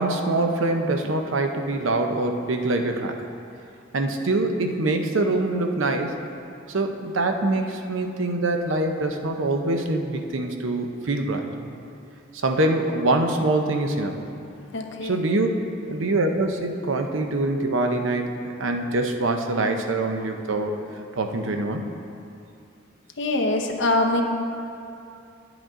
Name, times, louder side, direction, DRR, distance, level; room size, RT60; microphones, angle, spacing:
voice 1, 0.0-3.2 3.9-6.1 6.7-11.7 12.3-14.2 15.0-15.5 15.9-20.8 21.1-21.9, right 2 dB, 70° right, 5 dB, 0.7 m, -24 dB
voice 2, 14.7-15.2 23.2-24.2, left 2 dB, 65° left, 2 dB, 0.9 m, -23 dB
10.5 x 8.0 x 3.7 m, 2.6 s
head